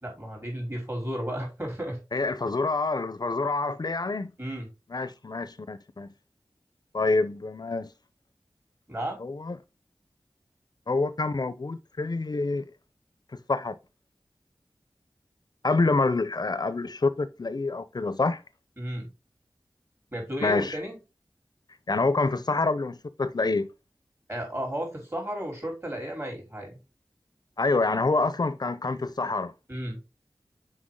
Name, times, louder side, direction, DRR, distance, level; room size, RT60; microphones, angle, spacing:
voice 1, 0.0-2.0 4.4-4.7 8.9-9.3 18.8-19.1 20.1-21.0 24.3-26.7 29.7-30.0, equal, 30° right, 3.5 m, -33 dB
voice 2, 2.1-4.3 4.9-6.1 6.9-7.9 9.2-9.6 10.9-12.7 13.3-13.7 15.6-18.4 20.4-20.8 21.9-23.7 27.6-29.5, left 3 dB, 55° left, 0.7 m, -27 dB
6.3 x 4.8 x 3.7 m
wide cardioid pair, 45°, 8 cm